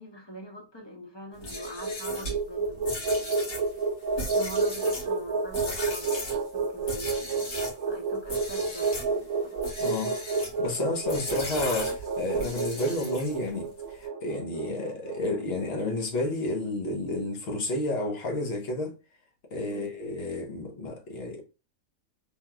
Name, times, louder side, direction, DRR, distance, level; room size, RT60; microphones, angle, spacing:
voice 1, 0.0-3.3 4.1-7.5 7.7-9.6 19.7-20.0, equal, 30° left, 0.5 m, -44 dB
sound 1, 1.3-7.8 8.3-9.1 9.6-10.6 11.1-13.5, left 1 dB, 65° left, 1.8 m, -37 dB
sound 2, 1.4-15.7, right 4 dB, 70° right, 0.9 m, -30 dB
voice 2, 9.8-18.9 19.5-21.4, left 2 dB, 45° left, 1.1 m, -31 dB
3.4 x 2.9 x 2.3 m
omnidirectional pair, 1.6 m